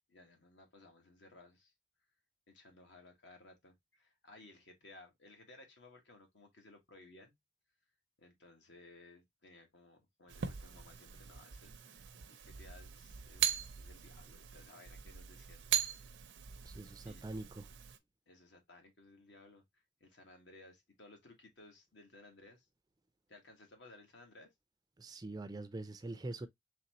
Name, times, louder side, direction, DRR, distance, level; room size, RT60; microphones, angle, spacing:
voice 1, 0.0-1.7 2.5-7.3 8.2-13.5 13.8-15.6 17.0-17.3 18.3-22.7 23.3-24.5, left 2 dB, 75° left, 1.4 m, -59 dB
sound 1, 10.3-18.0, right 9 dB, 75° right, 0.5 m, -40 dB
voice 2, 16.7-17.7 25.0-26.5, right 2 dB, 20° right, 0.3 m, -44 dB
4.1 x 3.2 x 2.8 m
head